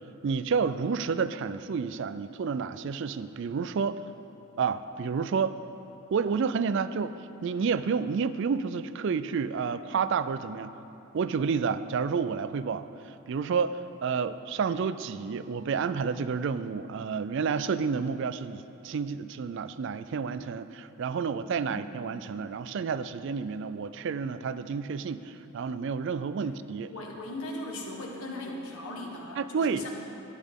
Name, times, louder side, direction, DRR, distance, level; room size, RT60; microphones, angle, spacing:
voice 1, 0.2-4.0 4.6-5.6 6.1-7.2 7.4-10.7 11.1-12.9 13.3-26.9 29.4-29.8, right 5 dB, 55° right, 13 dB, 0.3 m, -30 dB
voice 2, 26.9-29.9, left 1 dB, 80° left, 0 dB, 1.5 m, -38 dB
12.5 x 10.0 x 3.7 m, 3.0 s
head